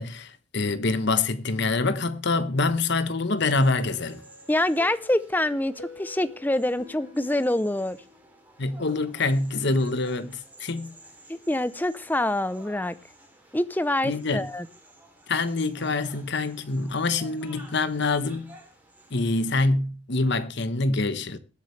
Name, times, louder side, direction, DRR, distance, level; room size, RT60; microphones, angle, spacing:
voice 1, 0.0-4.2 8.6-10.9 14.0-14.4 15.3-18.5 19.1-21.4, left 3 dB, 60° left, 1.1 m, -25 dB
sound 1, 3.4-19.6, right 2 dB, 10° right, 2.9 m, -53 dB
sound 2, 3.8-8.5, left 3 dB, 75° left, 1.9 m, -48 dB
voice 2, 4.5-8.0 11.3-12.9 13.5-14.7, left 1 dB, 10° left, 0.6 m, -25 dB
21.0 x 8.2 x 3.2 m
head